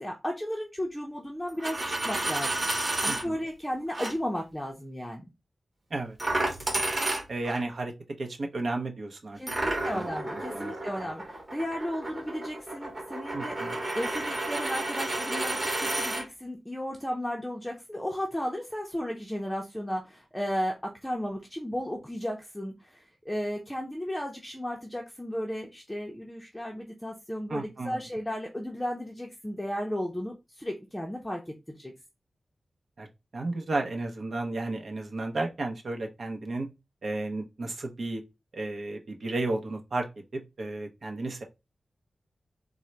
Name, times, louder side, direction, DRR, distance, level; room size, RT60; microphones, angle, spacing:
voice 1, 0.0-2.7 3.0-5.3 9.4-13.6 13.9-20.7 21.0-31.9, equal, 5° left, 0.6 m, -34 dB
Coin (dropping), 1.5-3.2 3.9-4.1 6.2-7.6 9.5-16.2, right 2 dB, 35° right, 1.5 m, -31 dB
voice 2, 3.1-3.4 5.9-6.2 7.3-7.9 8.2-10.1 10.5-10.7 13.3-13.8 27.5-28.0 33.0-33.1 33.3-36.7 37.0-38.2 38.5-40.1 40.3-41.4, right 2 dB, 60° right, 0.7 m, -33 dB
3.7 x 2.1 x 4.3 m
wide cardioid pair, 120°, 0 cm